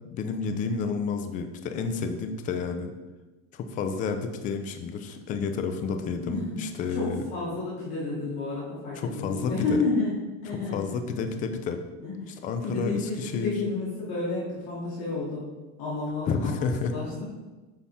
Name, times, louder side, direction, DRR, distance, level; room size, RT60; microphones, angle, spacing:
voice 1, 0.1-2.9 3.5-7.3 9.0-9.5 10.7-11.8 12.4-13.5 16.3-16.9, left 5 dB, 25° left, 6 dB, 0.5 m, -30 dB
voice 2, 6.2-10.1 10.4-11.0 12.0-12.3 12.6-15.5 15.8-17.2, left 3 dB, 50° left, -8 dB, 2.7 m, -31 dB
8.6 x 5.6 x 3.6 m, 1.2 s
supercardioid pair, 160°, 32 cm